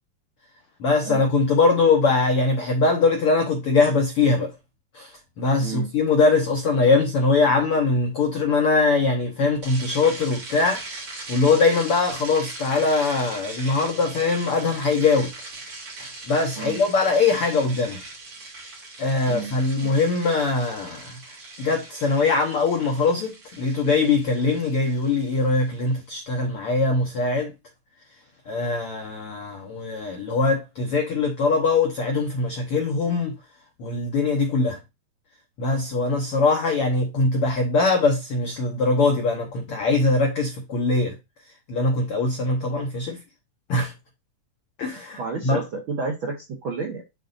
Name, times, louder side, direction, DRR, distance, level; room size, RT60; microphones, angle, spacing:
voice 1, 0.8-4.5 4.9-10.8 11.3-15.3 16.3-18.0 19.0-21.2 21.6-27.5 28.5-33.3 33.8-34.8 35.6-41.2 41.7-43.2 43.7-43.9 44.8-45.6, left 3 dB, 90° left, 1.2 m, -22 dB
voice 2, 5.6-5.9 16.6-16.8 19.3-19.5 19.8-20.0 45.2-47.0, right 4 dB, 75° right, 1.1 m, -31 dB
sound 1, 9.6-25.9, right 3 dB, 40° right, 2.7 m, -40 dB
10.0 x 3.9 x 2.5 m
omnidirectional pair, 4.1 m